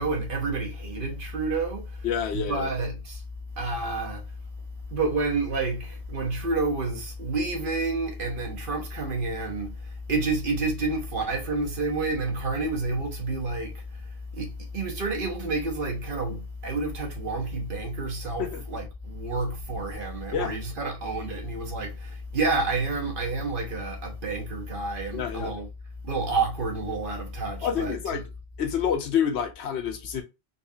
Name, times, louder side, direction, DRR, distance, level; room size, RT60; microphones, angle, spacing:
voice 1, 0.0-2.1 2.3-3.2 3.6-4.4 4.9-25.7 26.0-28.2, right 3 dB, 55° right, 1.2 m, -29 dB
voice 2, 2.0-2.7 18.4-18.6 20.3-20.5 25.1-25.5 27.6-28.2 28.6-30.2, left 8 dB, 85° left, 1.0 m, -28 dB
4.0 x 2.4 x 2.7 m
omnidirectional pair, 1.1 m